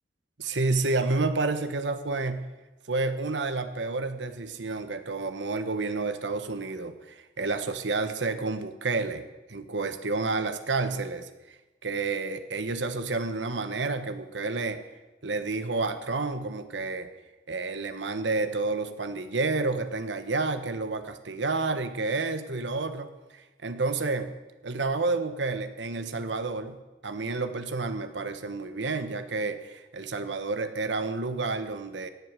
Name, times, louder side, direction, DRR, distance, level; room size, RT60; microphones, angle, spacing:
voice 1, 0.4-2.5 2.9-11.6 11.8-14.8 15.2-17.1 17.5-24.3 24.6-26.8 27.0-32.1, right 3 dB, 85° right, 9 dB, 1.2 m, -30 dB
16.5 x 8.2 x 7.6 m, 1.1 s
head